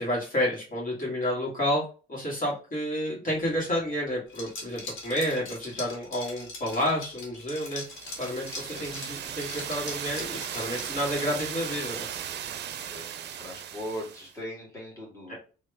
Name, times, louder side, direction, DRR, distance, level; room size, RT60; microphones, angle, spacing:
voice 1, 0.0-1.8 2.1-7.8 8.2-12.1 15.3-15.4, equal, 45° left, -5 dB, 1.8 m, -30 dB
Liquid, 4.3-11.7, left 2 dB, 85° left, 1.7 m, -41 dB
sound 1, 7.8-14.3, right 9 dB, 60° right, 0.5 m, -37 dB
voice 2, 13.4-15.3, equal, 15° left, -5 dB, 1.9 m, -39 dB
3.0 x 2.8 x 3.4 m, 0.36 s
cardioid pair, 90°, 20 cm